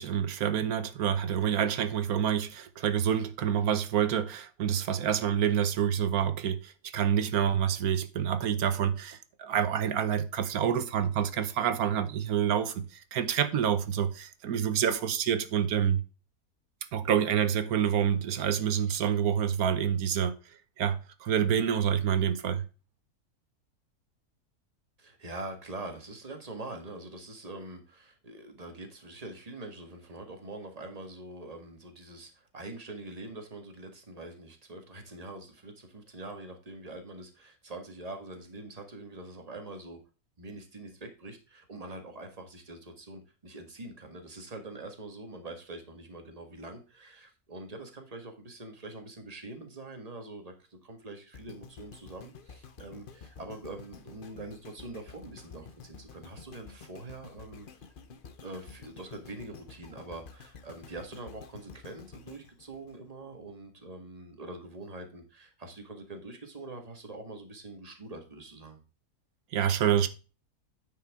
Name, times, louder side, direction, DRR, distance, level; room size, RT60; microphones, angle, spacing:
voice 1, 0.0-16.0 16.9-20.3 20.8-22.6 69.5-70.1, right 8 dB, 75° right, 1.2 m, -27 dB
voice 2, 25.0-40.0 40.4-57.7 58.4-68.8, right 2 dB, 25° right, 1.6 m, -44 dB
sound 1, 51.3-63.5 64.1-64.2, left 5 dB, 45° left, 0.8 m, -50 dB
9.5 x 5.5 x 3.5 m
omnidirectional pair, 1.6 m